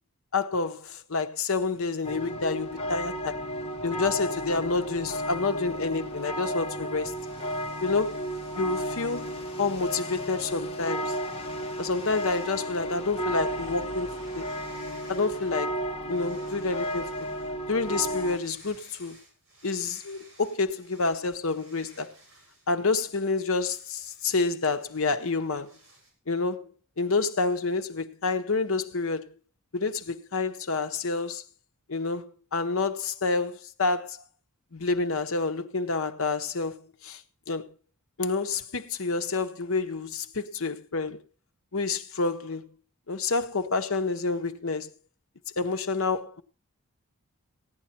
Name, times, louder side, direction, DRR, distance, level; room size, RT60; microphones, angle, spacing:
voice 1, 0.3-3.4 3.8-7.1 7.8-8.2 8.5-11.2 11.8-14.5 15.1-15.8 16.1-17.3 17.7-19.2 19.6-22.1 22.7-25.7 26.3-26.7 27.0-29.3 29.7-31.4 31.9-34.2 34.7-37.2 37.5-37.7 38.2-41.2 41.7-42.7 43.1-44.9 45.6-46.4, left 3 dB, 70° left, 1.0 m, -28 dB
sound 1, 2.0-18.4, equal, 25° left, 0.9 m, -33 dB
sound 2, 7.1-10.5 11.0-12.7 13.1-15.7 16.0-26.1, right 1 dB, 60° right, 7.0 m, -56 dB
16.0 x 9.9 x 4.3 m
head